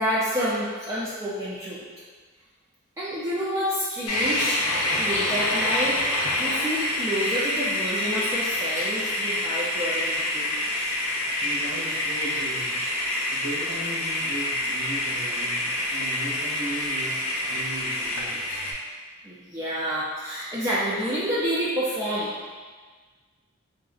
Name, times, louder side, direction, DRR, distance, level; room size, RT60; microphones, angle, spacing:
voice 1, 0.0-1.9 3.0-4.6 5.0-6.0 6.4-10.6 19.2-22.3, equal, 15° right, -9 dB, 0.4 m, -28 dB
sound 1, 4.1-18.7, left 1 dB, 85° left, 0.7 m, -27 dB
voice 2, 11.4-12.8 13.3-18.4, right 1 dB, 90° right, -7 dB, 0.9 m, -37 dB
3.8 x 2.4 x 2.4 m, 1.5 s
head